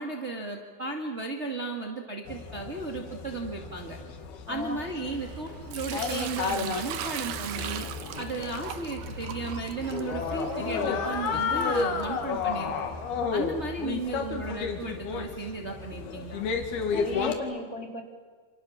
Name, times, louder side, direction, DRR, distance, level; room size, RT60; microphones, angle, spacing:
voice 1, 0.0-4.0 4.5-7.8 8.2-12.7 13.3-16.4, right 3 dB, 40° right, 1 dB, 0.9 m, -35 dB
sound 1, 2.3-17.4, left 5 dB, 65° left, 3.9 m, -32 dB
sound 2, 5.0-11.8, right 2 dB, 90° right, 8.1 m, -46 dB
Sink (filling or washing) / Liquid, 5.7-12.6, right 11 dB, 70° right, 2.5 m, -40 dB
voice 2, 16.9-18.0, left 2 dB, 15° left, 1 dB, 3.4 m, -35 dB
29.0 x 28.0 x 7.3 m, 1.5 s
omnidirectional pair, 5.1 m